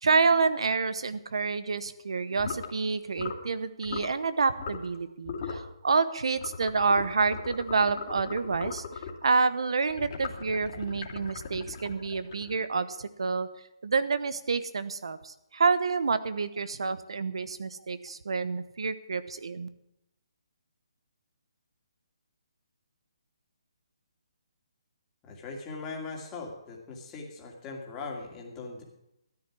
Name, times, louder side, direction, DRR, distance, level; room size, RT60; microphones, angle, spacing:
voice 1, 0.0-8.8 9.2-13.5 13.8-19.7, right 4 dB, 75° right, 13 dB, 1.0 m, -28 dB
sound 1, 2.4-2.7 3.2-3.5 3.8-4.1 4.6-5.0 5.2-5.7 6.4-9.2 9.9-12.7, left 5 dB, 40° left, 2.4 m, -39 dB
voice 2, 25.2-28.8, left 3 dB, 15° left, -1 dB, 2.4 m, -40 dB
13.5 x 10.0 x 6.1 m, 0.84 s
hypercardioid pair, 160°, 3 cm